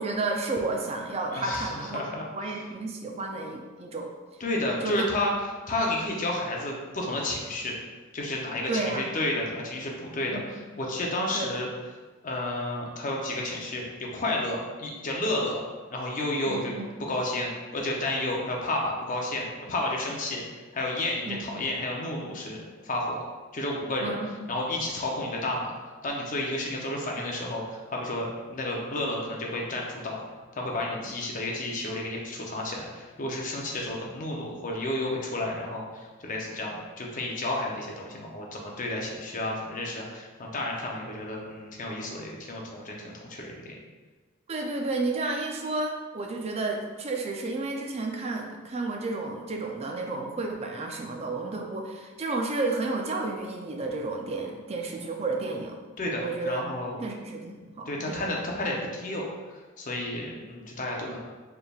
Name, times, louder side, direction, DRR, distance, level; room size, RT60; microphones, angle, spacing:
voice 1, 0.0-2.0 2.3-4.1 4.8-5.1 8.7-9.0 10.3-10.4 11.3-11.5 16.5-16.9 21.3-21.5 24.0-24.5 31.0-31.1 44.5-55.8 56.2-56.6 57.0-58.3, right 3 dB, 30° right, 2 dB, 0.4 m, -31 dB
voice 2, 1.3-2.3 4.4-5.3 5.7-7.8 8.1-11.7 12.2-15.6 15.9-16.7 17.1-20.4 20.7-23.2 23.5-24.2 24.5-25.7 26.0-30.2 30.5-43.8 56.0-57.0 57.9-59.3 59.8-61.2, left 1 dB, 40° left, -1 dB, 0.6 m, -31 dB
4.4 x 3.4 x 2.3 m, 1.3 s
head